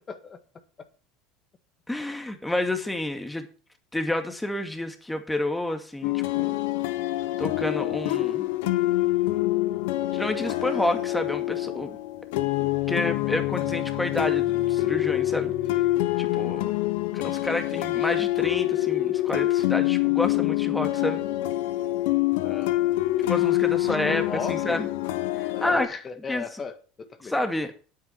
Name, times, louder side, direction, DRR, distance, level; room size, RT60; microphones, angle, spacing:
voice 1, 0.1-0.4 13.0-13.4 22.4-22.8 23.8-24.9 25.5-27.4, left 5 dB, 30° left, 1.7 m, -37 dB
voice 2, 1.9-3.5 3.9-6.5 7.4-8.5 10.1-12.0 12.6-15.5 16.2-16.7 17.1-21.2 23.3-24.2 24.5-24.9 25.4-25.9 26.3-26.4 27.3-27.7, left 1 dB, 5° left, 2.1 m, -29 dB
sound 1, 6.0-25.9, left 17 dB, 75° left, 0.9 m, -26 dB
Bowed string instrument, 12.9-17.2, right 2 dB, 60° right, 2.6 m, -47 dB
9.3 x 8.7 x 5.8 m
hypercardioid pair, 90°, 0 cm